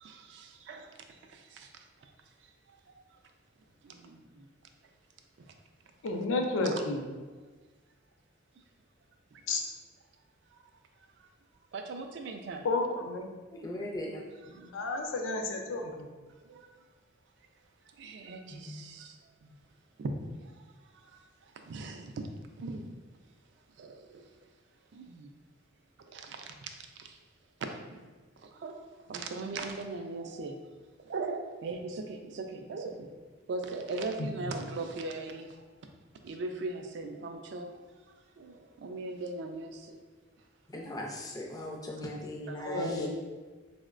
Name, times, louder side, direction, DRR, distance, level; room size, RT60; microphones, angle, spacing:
voice 1, 0.0-0.9 4.0-4.2 6.6-6.8 11.7-12.6 14.4-14.7 16.5-16.6 18.0-19.1 20.0-20.1 21.7-22.3 22.6-22.8 23.8-23.9 25.0-25.3 26.1-26.4 28.6-28.7 29.1-30.6 31.1-32.9 33.5-35.5 36.2-37.7 38.4-40.0 42.5-42.9, right 3 dB, 60° right, 5 dB, 0.3 m, -38 dB
voice 2, 6.0-7.0 9.5-9.6 12.6-13.3 14.7-16.1 34.2-34.3 42.6-43.1, left 3 dB, 90° left, 2 dB, 0.4 m, -31 dB
voice 3, 13.5-14.2 18.5-18.7 40.7-43.1, left 1 dB, 20° left, 0 dB, 0.4 m, -38 dB
4.4 x 2.1 x 2.4 m, 1.3 s
head